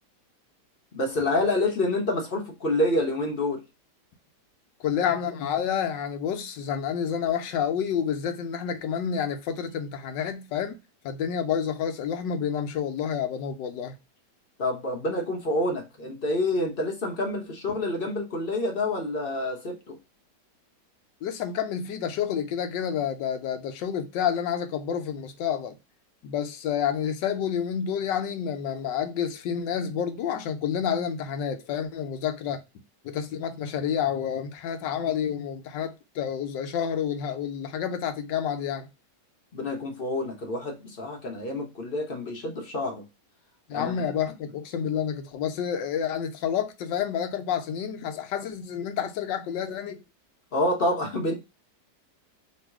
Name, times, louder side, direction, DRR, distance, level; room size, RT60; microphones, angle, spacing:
voice 1, 0.9-3.6 14.6-20.0 39.5-43.0 43.7-44.1 50.5-51.3, left 1 dB, 40° left, 0.8 m, -28 dB
voice 2, 4.8-10.8 11.0-14.0 21.2-25.8 26.2-32.6 33.0-38.9 43.7-50.0, left 8 dB, 90° left, 1.3 m, -29 dB
3.1 x 2.8 x 4.5 m
omnidirectional pair, 1.9 m